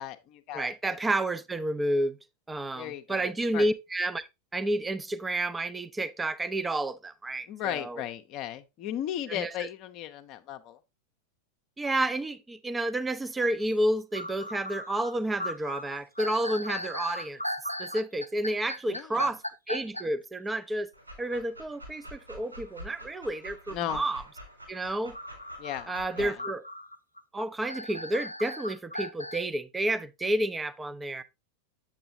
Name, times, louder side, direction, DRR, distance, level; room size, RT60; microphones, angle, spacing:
voice 1, 0.0-1.0 2.7-3.7 7.5-10.8 18.9-19.3 23.7-24.0 25.6-26.4, left 11 dB, 40° left, 0.7 m, -36 dB
voice 2, 0.5-2.2 2.5-4.3 4.5-8.0 9.3-9.5 11.8-17.4 17.8-19.4 19.7-20.9 21.2-24.2 24.7-25.1 25.9-26.6 27.3-31.2, right 1 dB, 10° right, 0.6 m, -30 dB
sound 1, 13.7-13.8 14.1-20.0 25.1-29.4, left 1 dB, 90° left, 0.6 m, -37 dB
Dog, 20.9-26.4, equal, 85° right, 3.9 m, -46 dB
7.8 x 7.4 x 2.6 m
figure-of-eight pair, 90°, 0 cm